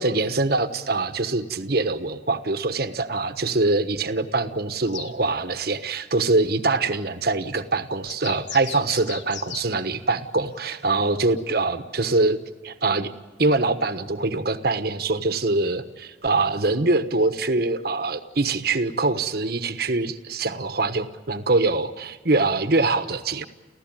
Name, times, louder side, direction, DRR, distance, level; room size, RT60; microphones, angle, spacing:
voice 1, 0.0-12.4 12.6-13.1 13.4-23.4, right 3 dB, 55° right, 10 dB, 1.2 m, -24 dB
sound 1, 4.9-5.1 8.1-9.7 10.9-11.0 11.6-11.7, left 8 dB, 75° left, 1.4 m, -37 dB
29.5 x 15.5 x 9.0 m, 1.3 s
head